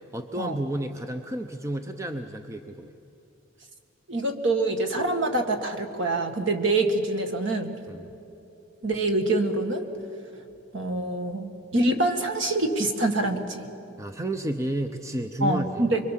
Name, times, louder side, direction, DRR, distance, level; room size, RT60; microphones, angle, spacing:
voice 1, 0.1-2.9 7.9-8.0 14.0-15.9, right 1 dB, 15° right, 6 dB, 0.7 m, -31 dB
voice 2, 4.1-7.8 8.8-9.8 10.7-13.6 15.4-16.0, right 2 dB, 60° right, 5 dB, 2.0 m, -25 dB
25.5 x 23.0 x 7.5 m, 2.8 s
head